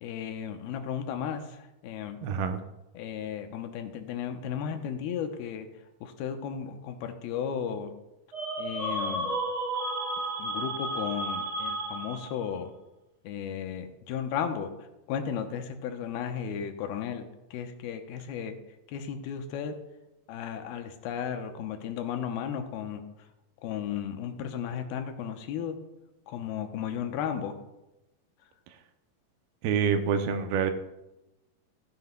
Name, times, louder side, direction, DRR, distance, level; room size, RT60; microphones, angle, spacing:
voice 1, 0.0-1.4 1.8-2.2 2.9-5.7 6.0-7.9 8.6-9.3 10.4-12.7 13.2-14.7 15.1-18.5 18.9-19.8 20.3-23.0 23.6-25.8 26.3-27.6, left 8 dB, 85° left, 6 dB, 2.7 m, -34 dB
voice 2, 2.2-2.6 29.6-30.7, right 7 dB, 85° right, 7 dB, 2.6 m, -26 dB
sound 1, 8.3-12.5, right 1 dB, 30° right, 2.8 m, -32 dB
15.0 x 9.4 x 2.2 m, 0.94 s
omnidirectional pair, 4.4 m